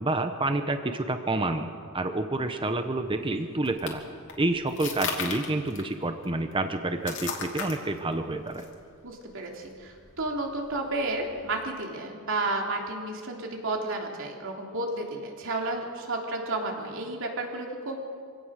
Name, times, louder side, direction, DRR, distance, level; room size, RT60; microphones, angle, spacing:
voice 1, 0.0-4.0 4.4-8.6, right 2 dB, 25° right, 7 dB, 0.9 m, -28 dB
sound 1, 3.0-11.6, left 5 dB, 55° left, 2.8 m, -39 dB
voice 2, 9.0-18.0, right 2 dB, 60° right, 1 dB, 3.3 m, -32 dB
26.0 x 17.5 x 6.5 m, 2.3 s
head